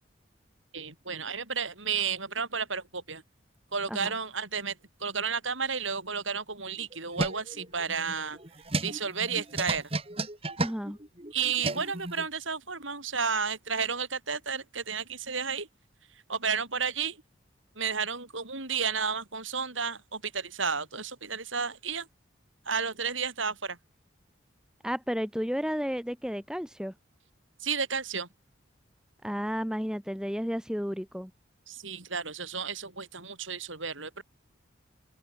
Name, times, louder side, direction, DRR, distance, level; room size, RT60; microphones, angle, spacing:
voice 1, 0.7-3.2 3.7-8.4 8.8-9.9 11.3-15.7 16.3-17.2 17.8-22.1 22.7-23.8 27.6-28.3 31.7-34.2, right 6 dB, 85° right, 7.8 m, -32 dB
sound 1, 6.7-12.3, right 2 dB, 30° right, 2.7 m, -34 dB
voice 2, 10.6-11.0 24.8-26.9 29.2-31.3, equal, 5° right, 7.0 m, -32 dB
open air
head